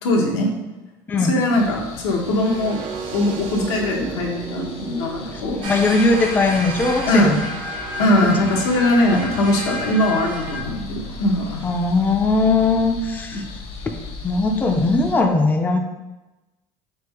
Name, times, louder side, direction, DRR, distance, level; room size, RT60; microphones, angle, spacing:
voice 1, 0.0-0.5 1.2-2.8 3.1-5.6 7.1-7.3 8.0-11.6 13.3-13.4, left 1 dB, 85° left, -1 dB, 0.9 m, -20 dB
sound 1, 1.5-15.2, left 3 dB, 45° left, 0.8 m, -37 dB
sound 2, 2.3-8.3, right 7 dB, 65° right, 0.4 m, -36 dB
voice 2, 5.6-7.4 8.2-8.4 9.1-9.2 11.6-13.4 13.8-15.8, left 3 dB, 15° left, 4 dB, 0.4 m, -19 dB
sound 3, 5.6-10.6, equal, 85° right, 1.2 m, -31 dB
3.6 x 3.4 x 3.3 m, 1.1 s
supercardioid pair, 100°, 13 cm